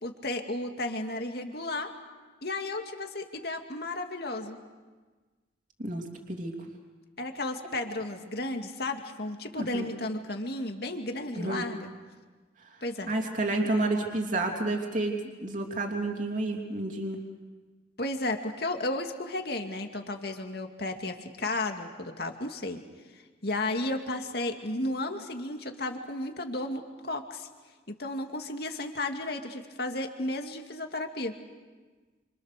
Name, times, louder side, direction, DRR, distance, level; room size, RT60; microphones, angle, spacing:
voice 1, 0.0-1.9 2.4-4.6 7.2-11.9 12.8-13.1 18.0-22.8 23.4-27.5 27.9-31.3, left 2 dB, 55° left, 4 dB, 2.3 m, -33 dB
voice 2, 5.8-6.6 9.6-9.9 11.4-11.7 12.7-12.8 13.1-15.2 15.4-17.2, right 2 dB, 45° right, 1 dB, 2.9 m, -30 dB
30.0 x 26.0 x 6.7 m, 1.3 s
head